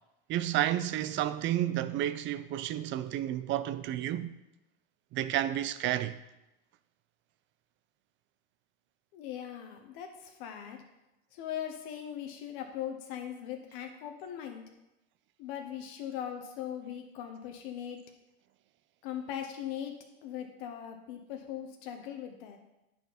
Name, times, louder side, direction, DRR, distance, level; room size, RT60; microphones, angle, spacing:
voice 1, 0.3-4.4 5.1-6.2, right 12 dB, 40° right, 0.5 m, -31 dB
voice 2, 9.1-10.8 11.3-14.6 15.4-18.0 19.0-19.9 20.2-22.6, left 10 dB, 65° left, 1.1 m, -40 dB
9.3 x 4.4 x 5.1 m
supercardioid pair, 120°, 31 cm